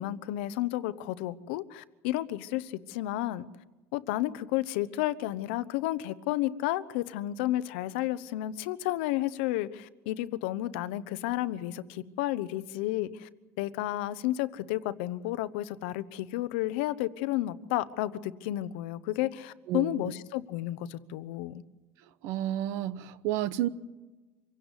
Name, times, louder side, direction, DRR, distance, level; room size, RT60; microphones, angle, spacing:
voice 1, 0.0-3.5 3.9-13.3 13.6-21.6, left 15 dB, 75° left, 1.0 m, -32 dB
voice 2, 19.7-20.1 22.2-23.7, right 12 dB, 55° right, 1.0 m, -31 dB
26.0 x 17.0 x 8.3 m
cardioid pair, 165°, 6 cm